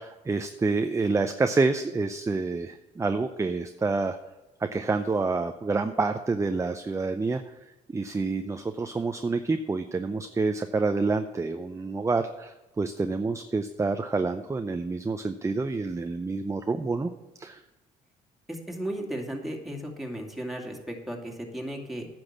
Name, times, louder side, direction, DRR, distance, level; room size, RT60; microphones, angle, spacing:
voice 1, 0.0-4.2 4.7-7.4 7.9-17.1 17.4-17.6, right 3 dB, 20° right, 8 dB, 0.6 m, -28 dB
voice 2, 18.5-22.1, right 1 dB, ahead, 1 dB, 2.3 m, -35 dB
9.9 x 6.1 x 7.3 m, 1.0 s
supercardioid pair, 70°, 16 cm